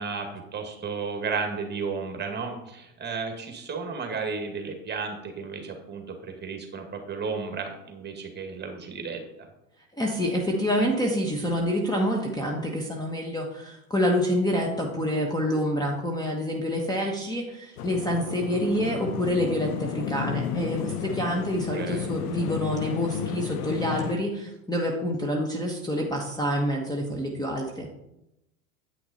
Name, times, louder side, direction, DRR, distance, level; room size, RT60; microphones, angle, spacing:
voice 1, 0.0-9.2 21.4-22.2, right 5 dB, 25° right, 4 dB, 1.9 m, -33 dB
voice 2, 9.9-27.9, equal, 10° left, 0 dB, 1.2 m, -27 dB
sound 1, 17.8-24.1, left 8 dB, 85° left, 0.7 m, -32 dB
9.1 x 5.9 x 4.1 m, 0.86 s
hypercardioid pair, 90°, 45 cm